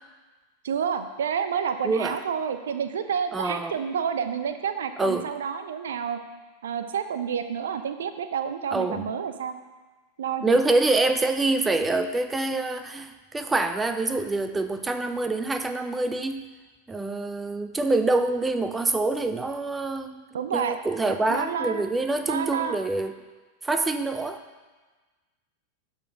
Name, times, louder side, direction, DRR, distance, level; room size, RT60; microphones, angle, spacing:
voice 1, 0.6-6.2 6.6-9.5 10.2-10.6 20.3-20.8 21.1-21.8 22.2-22.8, right 7 dB, 65° right, 9 dB, 0.7 m, -29 dB
voice 2, 1.8-2.2 3.3-3.7 5.0-5.3 8.7-9.1 10.4-16.4 16.9-23.1 23.6-24.4, right 2 dB, 10° right, 9 dB, 0.6 m, -26 dB
12.0 x 4.5 x 5.7 m, 1.3 s
figure-of-eight pair, 90°, 0 cm